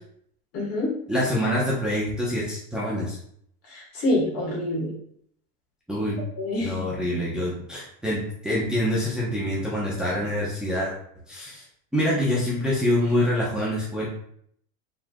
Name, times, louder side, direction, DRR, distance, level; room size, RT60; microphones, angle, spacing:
voice 1, 0.5-0.9 3.7-4.9 6.4-6.8, left 1 dB, 40° left, -1 dB, 1.6 m, -26 dB
voice 2, 1.1-3.2 5.9-6.2 6.6-10.9 11.3-11.6 11.9-14.1, left 1 dB, ahead, -7 dB, 0.9 m, -25 dB
4.6 x 3.7 x 2.3 m, 0.67 s
supercardioid pair, 125°, 37 cm